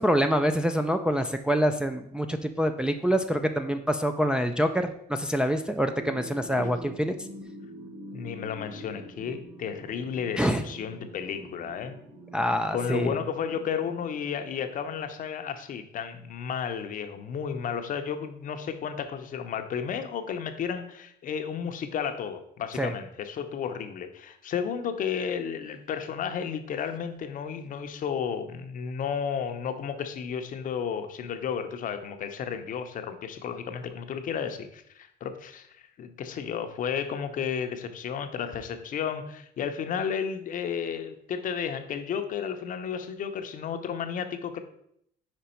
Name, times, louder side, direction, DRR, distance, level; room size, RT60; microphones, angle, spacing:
voice 1, 0.0-7.1 10.4-10.6 12.3-13.2 22.8-22.9, equal, 5° right, 5 dB, 0.3 m, -26 dB
sound 1, 6.0-15.0, right 1 dB, 30° right, 1.6 m, -45 dB
voice 2, 8.1-12.0 12.7-44.6, left 7 dB, 55° left, 8 dB, 0.7 m, -33 dB
5.2 x 4.6 x 4.3 m, 0.72 s
cardioid pair, 110°, 17 cm